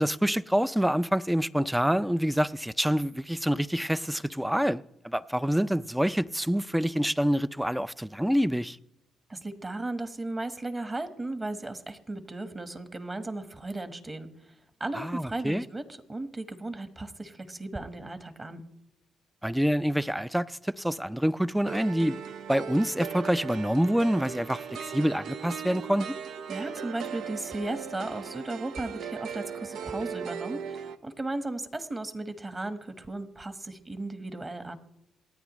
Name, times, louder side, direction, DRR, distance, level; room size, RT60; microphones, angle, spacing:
voice 1, 0.0-8.8 14.9-15.6 19.4-22.2 22.5-26.2, equal, 5° right, 0.4 m, -27 dB
voice 2, 9.3-14.5 14.8-15.8 16.1-18.6 26.5-34.8, right 2 dB, 25° right, 1.3 m, -36 dB
sound 1, 21.7-31.0, right 7 dB, 75° right, 0.6 m, -38 dB
27.5 x 9.2 x 3.1 m
cardioid pair, 90°, 0 cm